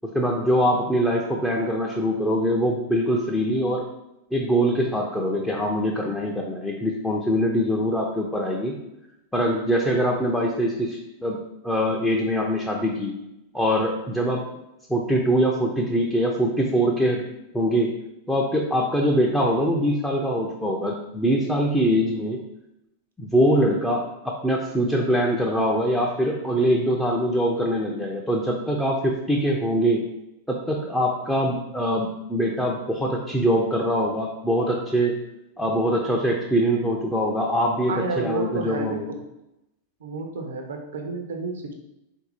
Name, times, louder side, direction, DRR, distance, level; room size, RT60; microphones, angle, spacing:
voice 1, 0.1-3.8 4.3-8.7 9.3-11.4 11.6-13.1 13.5-14.4 14.9-17.3 17.5-17.9 18.3-22.4 23.2-30.0 30.5-35.2 35.6-39.1, equal, 5° left, -2 dB, 0.5 m, -23 dB
voice 2, 37.9-39.2 40.0-41.7, right 3 dB, 65° right, 4 dB, 0.7 m, -30 dB
3.9 x 2.7 x 4.3 m, 0.89 s
figure-of-eight pair, 90°, 0 cm